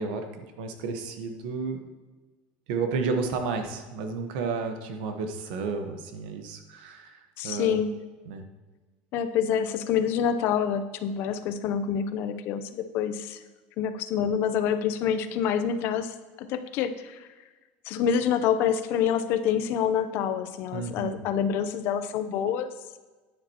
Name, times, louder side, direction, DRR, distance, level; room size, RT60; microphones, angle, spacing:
voice 1, 0.0-1.8 2.7-7.1 7.4-7.8 8.3-8.4 20.7-21.2, right 4 dB, 80° right, 6 dB, 1.3 m, -32 dB
voice 2, 7.4-8.0 9.1-13.4 13.8-17.3 17.8-22.7, left 8 dB, 55° left, 10 dB, 0.7 m, -27 dB
10.0 x 9.5 x 3.0 m, 1.3 s
cardioid pair, 155°, 5 cm